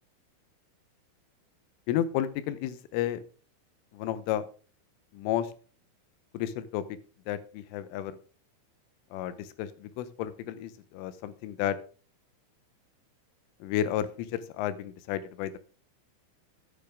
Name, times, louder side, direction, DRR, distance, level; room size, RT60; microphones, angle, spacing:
voice 1, 1.9-3.2 3.9-4.5 5.1-5.5 6.3-6.8 7.3-8.2 9.1-11.8 13.6-15.6, left 11 dB, 85° left, 13 dB, 3.3 m, -32 dB
10.0 x 9.1 x 3.5 m, 0.38 s
omnidirectional pair, 5.7 m